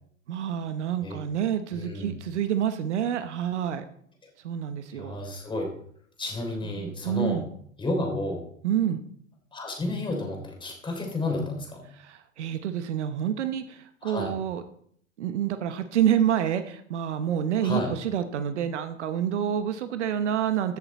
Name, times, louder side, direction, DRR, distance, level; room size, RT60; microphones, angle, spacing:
voice 1, 0.3-3.8 4.4-5.2 6.8-7.4 8.6-9.0 12.0-14.6 15.2-20.8, right 9 dB, 60° right, 10 dB, 1.0 m, -28 dB
voice 2, 1.7-2.1 4.9-5.7 6.2-7.5 7.8-8.4 9.5-11.8 14.0-14.3 17.6-17.9, left 2 dB, 10° left, 1 dB, 3.4 m, -31 dB
15.0 x 7.0 x 4.2 m, 0.63 s
figure-of-eight pair, 100°, 39 cm